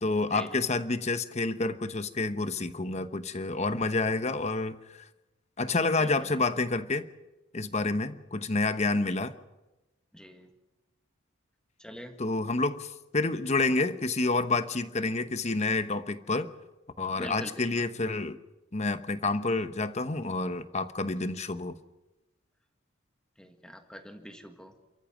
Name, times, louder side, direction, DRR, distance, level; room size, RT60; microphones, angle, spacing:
voice 1, 0.0-4.8 5.6-7.1 7.5-9.3 12.2-16.5 17.0-18.4 18.7-21.7, left 3 dB, 35° left, 11 dB, 1.0 m, -29 dB
voice 2, 6.0-6.3 10.1-10.5 11.8-12.2 17.2-17.8 23.4-24.7, equal, 5° left, 5 dB, 1.8 m, -44 dB
28.5 x 14.0 x 7.3 m, 1.0 s
head